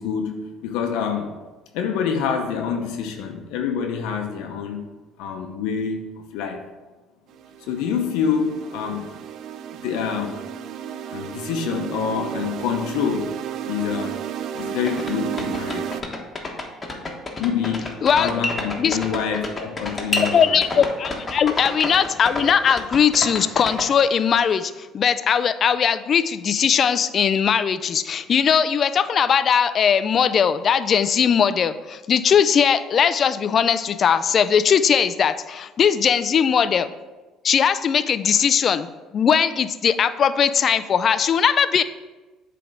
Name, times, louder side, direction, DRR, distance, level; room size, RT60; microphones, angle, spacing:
voice 1, 0.0-1.3 1.7-4.8 5.2-6.0 6.3-6.6 7.7-9.1 9.8-10.4 11.1-13.4 13.7-14.2 14.5-15.9 17.4-20.6, left 7 dB, 80° left, 3 dB, 0.7 m, -26 dB
sound 1, 7.3-16.0, right 9 dB, 65° right, 0.4 m, -33 dB
sound 2, 14.6-14.7 14.9-23.9, left 2 dB, 25° left, 1.2 m, -28 dB
voice 2, 20.3-36.9 37.4-38.9 39.1-41.8, left 7 dB, 45° left, 13 dB, 0.3 m, -19 dB
7.8 x 3.4 x 4.9 m, 1.2 s
supercardioid pair, 85°, 0 cm